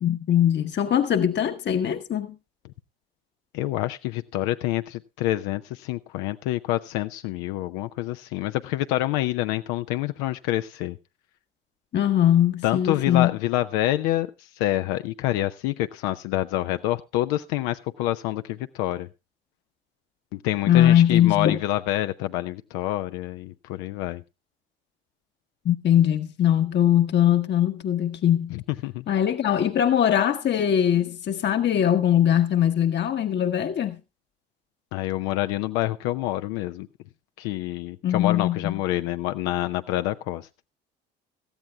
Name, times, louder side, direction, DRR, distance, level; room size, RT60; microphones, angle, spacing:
voice 1, 0.0-2.3 11.9-13.3 20.7-21.6 25.6-28.5 29.1-34.0 38.0-38.8, left 10 dB, 40° left, 1.1 m, -21 dB
voice 2, 3.5-11.0 12.6-19.1 20.3-24.2 28.5-29.1 34.9-36.9 37.4-40.5, left 15 dB, 60° left, 0.6 m, -27 dB
17.0 x 14.0 x 2.3 m
figure-of-eight pair, 55°, 29 cm